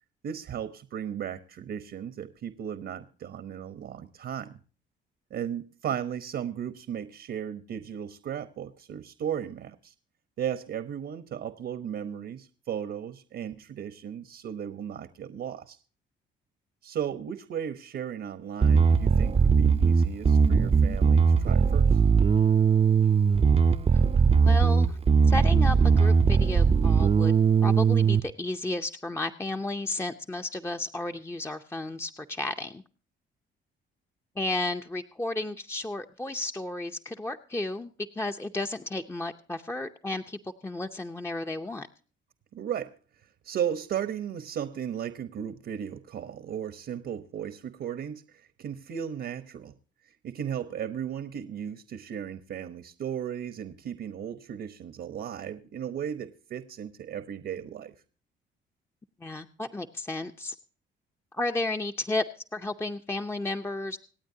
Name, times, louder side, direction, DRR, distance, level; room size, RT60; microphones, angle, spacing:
voice 1, 0.2-4.6 5.3-9.9 10.4-15.8 16.8-22.0 42.5-43.0 43.2-49.7 50.2-57.9, right 9 dB, 65° right, 12 dB, 1.0 m, -35 dB
Bass guitar, 18.6-28.2, right 6 dB, 30° right, 0.6 m, -20 dB
voice 2, 24.4-25.0 25.3-27.3 27.6-32.8 34.4-37.9 38.2-41.9 59.2-60.6 61.3-62.2 62.5-64.0, left 2 dB, 10° left, 5 dB, 0.7 m, -33 dB
26.0 x 8.9 x 2.7 m, 0.40 s
cardioid pair, 90°, 20 cm